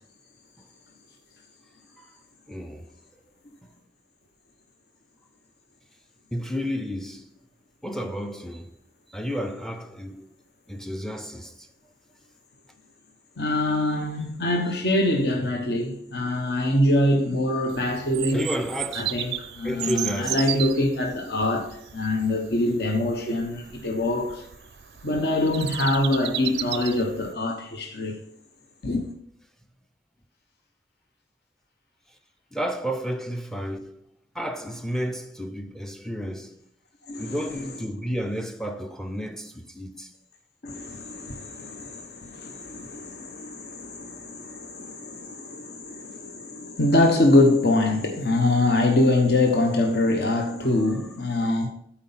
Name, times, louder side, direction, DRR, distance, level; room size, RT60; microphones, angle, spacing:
voice 1, 2.5-2.9 3.6-3.8 6.3-7.3 7.8-8.7 9.1-10.3 10.7-11.7 18.3-19.3 19.6-20.5 32.5-34.0 34.3-36.6 37.2-40.1 50.8-51.0, equal, 5° left, 0.5 m, -32 dB
voice 2, 13.4-18.4 19.0-24.5 25.0-28.2 28.8-29.0 37.1-37.3 40.6-51.7, left 1 dB, 60° left, 0.9 m, -24 dB
Bird vocalization bird call bird song, 17.7-27.3, right 13 dB, 65° right, 0.4 m, -35 dB
8.2 x 4.5 x 5.6 m
head